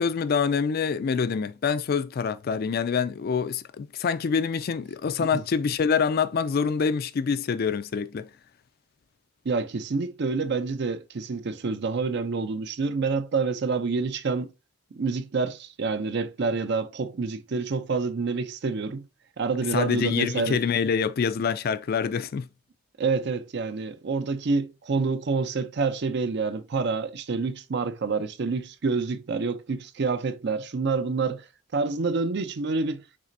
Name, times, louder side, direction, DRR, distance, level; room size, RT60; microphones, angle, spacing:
voice 1, 0.0-8.3 19.7-22.5, left 6 dB, 50° left, 0.3 m, -26 dB
voice 2, 9.4-14.5 14.9-19.0 19.4-20.6 23.0-31.4 31.7-33.0, right 4 dB, 55° right, 0.5 m, -27 dB
6.0 x 3.3 x 2.6 m
head